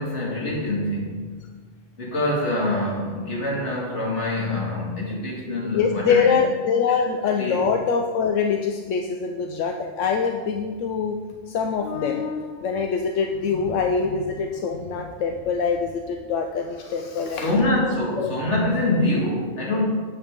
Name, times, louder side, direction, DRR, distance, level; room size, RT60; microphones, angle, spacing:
voice 1, 0.0-1.4 2.0-6.4 6.9-7.0 7.4-7.6 17.3-19.8, left 1 dB, 70° left, -4 dB, 2.3 m, -25 dB
voice 2, 5.7-11.2 11.5-17.6 18.2-18.3, left 6 dB, 85° left, 3 dB, 1.0 m, -24 dB
9.2 x 7.2 x 3.7 m, 1.5 s
omnidirectional pair, 1.3 m